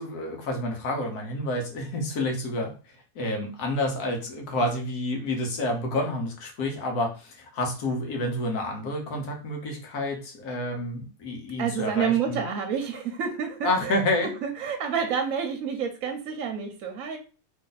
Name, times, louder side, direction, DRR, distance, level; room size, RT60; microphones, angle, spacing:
voice 1, 0.0-2.7 3.1-12.4 13.6-14.3, left 1 dB, 80° left, 2 dB, 1.5 m, -29 dB
voice 2, 11.6-17.2, right 7 dB, 65° right, 4 dB, 1.0 m, -29 dB
3.2 x 2.6 x 3.8 m, 0.35 s
omnidirectional pair, 1.6 m